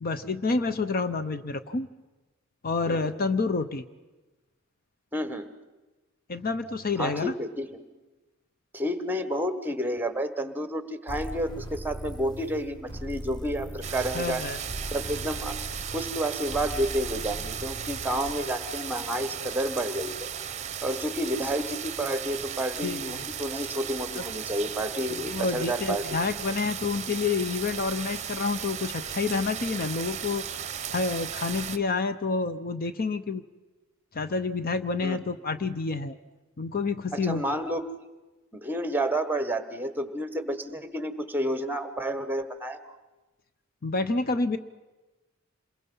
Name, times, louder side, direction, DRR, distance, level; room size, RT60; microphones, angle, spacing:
voice 1, 0.0-1.9 2.6-3.9 6.3-7.3 14.1-14.6 22.8-23.3 24.2-24.3 25.1-30.4 30.9-33.4 34.1-36.2 36.6-37.5 43.8-44.6, left 4 dB, 45° left, 11 dB, 0.7 m, -28 dB
voice 2, 5.1-5.5 7.0-7.8 8.7-14.4 14.9-15.6 15.9-20.3 20.8-26.3 35.0-35.2 37.1-37.9 38.5-43.0, right 1 dB, 10° right, 10 dB, 1.3 m, -30 dB
sound 1, 11.1-18.3, right 1 dB, 20° left, 1.4 m, -39 dB
sound 2, 13.8-31.8, right 8 dB, 35° right, 0.8 m, -36 dB
27.5 x 22.0 x 5.5 m, 1.1 s
head